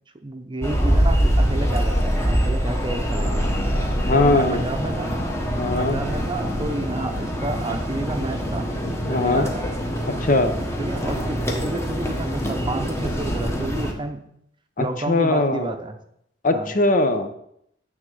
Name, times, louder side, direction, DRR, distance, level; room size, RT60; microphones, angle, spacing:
voice 1, 0.2-3.5 4.0-5.2 5.8-8.7 9.1-9.7 10.8-14.3 14.8-16.0 16.5-16.7, right 2 dB, 25° right, 6 dB, 0.7 m, -30 dB
sound 1, 0.6-13.9, equal, 15° left, 1.2 m, -24 dB
voice 2, 4.1-4.6 5.6-6.0 9.1-9.5 10.1-10.5 14.8-15.7 16.4-17.3, left 2 dB, 45° left, 8 dB, 0.7 m, -20 dB
9.6 x 3.6 x 6.7 m, 0.74 s
head